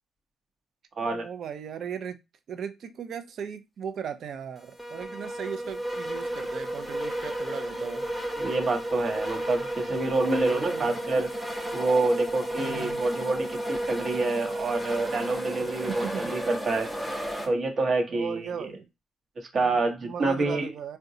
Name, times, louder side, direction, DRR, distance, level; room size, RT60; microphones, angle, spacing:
voice 1, 1.1-2.2 2.5-8.1 10.2-10.9 12.6-13.0 15.6-16.3 18.1-18.9 19.6-21.0, right 7 dB, 65° right, 0.5 m, -37 dB
sound 1, 4.8-17.5, right 1 dB, ahead, 0.7 m, -32 dB
voice 2, 8.4-11.3 11.7-16.9 17.4-18.4 19.4-20.7, right 2 dB, 45° right, 0.9 m, -27 dB
3.7 x 2.2 x 2.7 m
cardioid pair, 90°, 0 cm